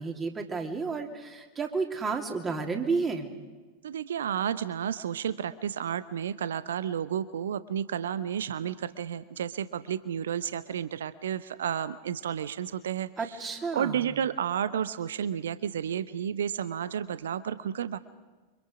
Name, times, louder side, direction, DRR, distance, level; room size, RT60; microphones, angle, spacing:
voice 1, 0.0-3.3 13.2-14.1, right 4 dB, 20° right, 2 dB, 2.9 m, -31 dB
voice 2, 3.8-13.1 13.7-18.0, right 9 dB, 65° right, 15 dB, 0.8 m, -31 dB
29.0 x 25.0 x 5.1 m, 1.3 s
figure-of-eight pair, 90°, 0 cm